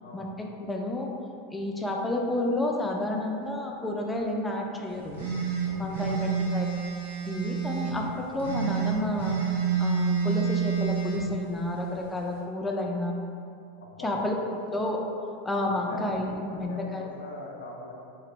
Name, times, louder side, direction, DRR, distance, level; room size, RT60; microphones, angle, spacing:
voice 1, 0.1-1.1 1.5-5.3 5.8-6.7 7.3-9.4 9.8-13.2 14.0-15.0 15.4-17.1, left 1 dB, 10° left, 0 dB, 0.4 m, -30 dB
sound 1, 5.2-8.0 8.4-11.2, right 6 dB, 80° right, 0.6 m, -28 dB
voice 2, 5.6-6.2 13.8-14.1 15.6-16.2 16.5-17.9, left 2 dB, 85° left, -1 dB, 0.4 m, -42 dB
2.9 x 2.5 x 3.1 m, 2.5 s
hypercardioid pair, 105°, 0 cm